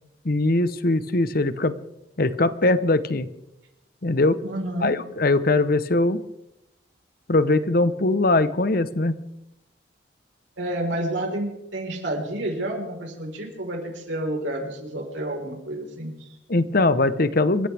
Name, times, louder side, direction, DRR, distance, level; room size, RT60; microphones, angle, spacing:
voice 1, 0.2-1.8 2.2-3.3 4.0-4.4 4.8-6.2 7.3-9.2 16.5-17.7, left 2 dB, 50° left, 13 dB, 0.9 m, -21 dB
voice 2, 4.4-4.9 10.6-16.4, right 1 dB, 75° right, 0 dB, 4.4 m, -30 dB
28.0 x 15.0 x 3.5 m, 0.86 s
head